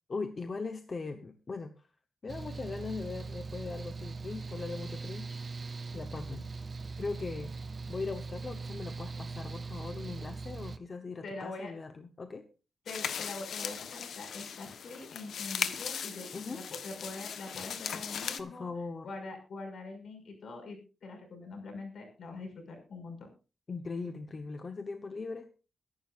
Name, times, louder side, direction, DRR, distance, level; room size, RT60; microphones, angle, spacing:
voice 1, 0.1-1.7 2.2-5.4 5.9-6.5 7.0-7.5 7.9-12.5 16.3-16.6 18.4-19.1 23.7-25.5, left 4 dB, 30° left, 7 dB, 1.0 m, -39 dB
Mechanical fan, 2.3-10.8, right 4 dB, 30° right, 0.5 m, -40 dB
voice 2, 11.2-11.7 12.9-18.7 19.0-23.3, left 3 dB, 60° left, 4 dB, 6.1 m, -44 dB
sound 1, 12.9-18.4, left 7 dB, 80° left, 1.1 m, -38 dB
23.5 x 11.5 x 2.5 m, 0.33 s
wide cardioid pair, 175°, 0 cm